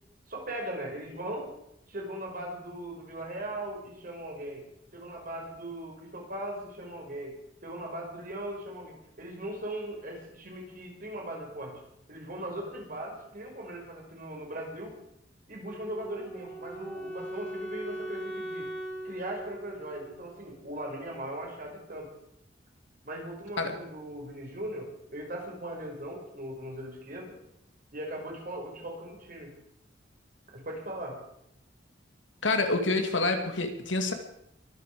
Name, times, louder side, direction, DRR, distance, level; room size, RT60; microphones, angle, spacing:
voice 1, 0.3-1.5 1.9-4.6 4.9-7.4 7.6-11.7 12.1-14.9 15.5-18.7 19.0-22.1 23.0-27.4 27.9-29.5 30.5-31.2, right 1 dB, 50° right, 0 dB, 5.7 m, -39 dB
Wind instrument woodwind instrument, 15.6-20.7, right 1 dB, 5° left, 2.6 m, -40 dB
voice 2, 32.4-34.1, left 3 dB, 75° left, 5 dB, 2.5 m, -27 dB
23.5 x 8.4 x 6.9 m, 0.78 s
head